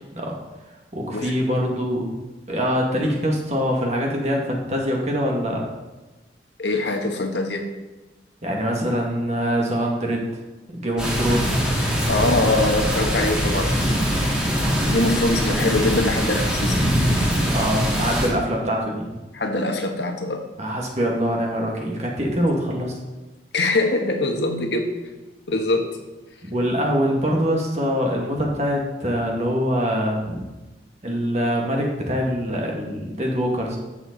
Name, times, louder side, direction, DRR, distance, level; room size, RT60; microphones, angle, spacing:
voice 1, 0.9-2.1 2.5-5.7 8.4-10.3 10.7-11.6 17.5-19.2 20.6-23.0 26.5-30.5 31.0-33.8, equal, 40° right, -1 dB, 2.1 m, -24 dB
voice 2, 6.6-7.6 12.1-13.7 14.8-16.8 19.3-20.4 23.5-24.9 25.5-25.9, left 2 dB, 70° left, 4 dB, 1.5 m, -23 dB
sound 1, 11.0-18.3, equal, 5° right, 2.3 m, -22 dB
14.0 x 7.1 x 4.0 m, 1.1 s
head